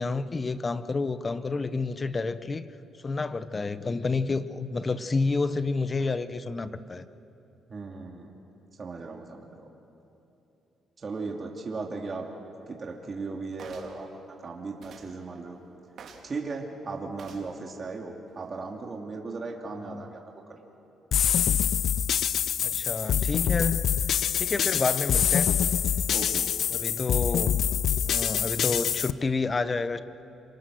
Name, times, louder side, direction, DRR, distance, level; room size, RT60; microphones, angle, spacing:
voice 1, 0.0-2.7 3.0-7.1 19.8-20.0 22.6-23.8 24.4-25.5 26.7-27.6 28.1-30.0, left 3 dB, 30° left, 13 dB, 1.0 m, -29 dB
voice 2, 7.7-8.3 8.8-9.6 11.0-12.3 12.7-14.1 14.4-15.6 16.2-20.2 20.5-20.6 26.1-26.5, right 3 dB, 40° right, 0 dB, 2.7 m, -37 dB
sound 1, 13.6-14.0 14.8-15.1 16.0-16.3 17.2-17.5 18.3-18.4, right 5 dB, 65° right, 3.0 m, -47 dB
sound 2, 21.1-29.1, left 9 dB, 65° left, 0.6 m, -25 dB
27.0 x 25.5 x 6.5 m, 2.9 s
cardioid pair, 90°, 0 cm